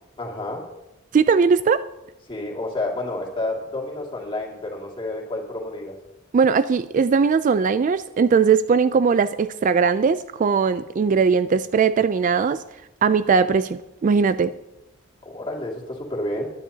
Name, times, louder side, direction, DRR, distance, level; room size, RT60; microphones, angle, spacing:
voice 1, 0.2-0.7 2.3-6.0 15.2-16.5, left 2 dB, 25° left, -1 dB, 2.3 m, -30 dB
voice 2, 1.1-1.9 6.3-12.6 13.0-14.5, right 5 dB, 40° right, 14 dB, 0.3 m, -19 dB
21.5 x 10.0 x 2.8 m, 0.94 s
head